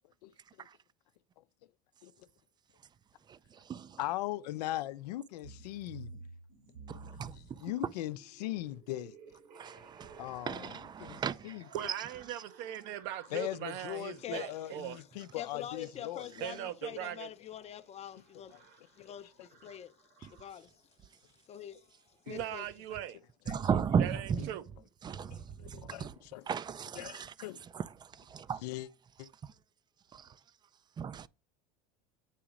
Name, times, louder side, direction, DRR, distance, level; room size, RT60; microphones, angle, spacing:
voice 1, 4.0-6.1 6.9-9.2 10.2-11.7 13.3-16.5 16.9-17.0 19.0-19.1 22.3-22.4 23.5-23.6 25.3-26.4 27.0-27.6 28.6-28.9 29.2-29.3, left 15 dB, 85° left, 0.6 m, -40 dB
sound 1, 5.4-20.8 21.5-21.8 22.1-22.3 22.6-22.7 23.0-23.3, right 4 dB, 85° right, 2.9 m, -56 dB
voice 2, 6.9-7.6 9.5-11.5 23.5-24.5 25.0-26.1 26.5-27.3 27.7-27.8 28.2-28.6 30.1-30.3 31.0-31.3, right 7 dB, 20° right, 0.4 m, -35 dB
voice 3, 11.7-15.0 16.4-17.3 22.3-23.2 24.0-24.6, right 11 dB, 65° right, 0.8 m, -39 dB
voice 4, 14.2-14.5 14.8-15.0 15.3-22.7, left 10 dB, 30° left, 0.6 m, -46 dB
8.4 x 3.0 x 5.0 m
supercardioid pair, 105°, 20 cm